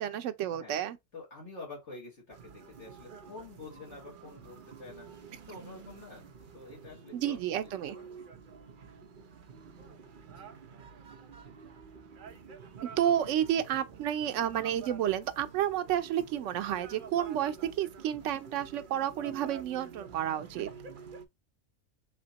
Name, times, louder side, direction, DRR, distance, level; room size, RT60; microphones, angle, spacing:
voice 1, 0.0-1.0 7.1-8.0 13.0-20.7, right 10 dB, 75° right, 0.9 m, -31 dB
voice 2, 1.1-5.1 5.5-8.4 10.3-10.5, left 3 dB, 65° left, 2.0 m, -48 dB
sound 1, 2.3-21.3, right 6 dB, 50° right, 0.8 m, -49 dB
4.4 x 2.8 x 3.9 m
omnidirectional pair, 1.3 m